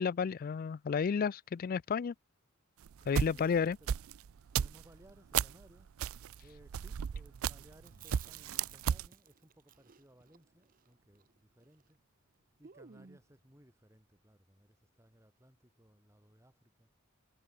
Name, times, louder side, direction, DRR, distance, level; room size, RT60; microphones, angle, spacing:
voice 1, 0.0-2.1 3.1-3.8, left 6 dB, 45° left, 0.3 m, -32 dB
sound 1, 2.8-5.6 6.0-7.8 8.1-9.1, right 8 dB, 75° right, 0.4 m, -34 dB
voice 2, 3.0-4.0 4.5-6.0 6.4-12.0 12.6-16.9, equal, 15° right, 4.1 m, -62 dB
Chewing mastication, 7.8-12.0 12.2-12.3 12.6-13.4, right 8 dB, 40° right, 0.7 m, -56 dB
head